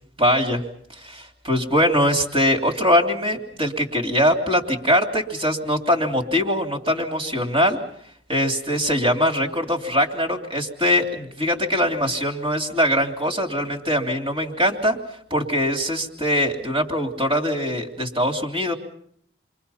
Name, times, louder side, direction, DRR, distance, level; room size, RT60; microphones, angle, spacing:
voice 1, 0.2-0.6 0.9-7.8 8.3-15.0 15.3-18.7, equal, 25° right, 2 dB, 3.1 m, -22 dB
29.5 x 24.0 x 5.7 m, 0.66 s
head